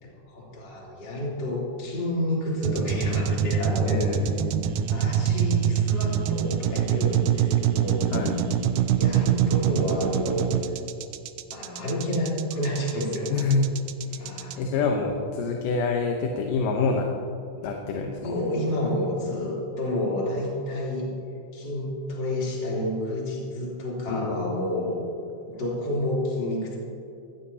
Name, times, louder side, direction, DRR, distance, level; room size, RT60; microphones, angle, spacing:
voice 1, 0.0-4.1 4.9-8.1 8.9-10.5 11.5-13.3 14.2-14.8 18.2-21.1 21.5-24.9 25.5-26.8, left 1 dB, 35° left, -5 dB, 3.9 m, -29 dB
sound 1, 2.6-14.5, right 9 dB, 80° right, 2.1 m, -25 dB
voice 2, 3.8-4.3 8.1-8.4 13.3-13.7 14.0-17.1 17.6-18.4 24.1-24.5, left 4 dB, 90° left, 2 dB, 2.6 m, -27 dB
19.5 x 15.0 x 2.8 m, 2.7 s
omnidirectional pair, 3.7 m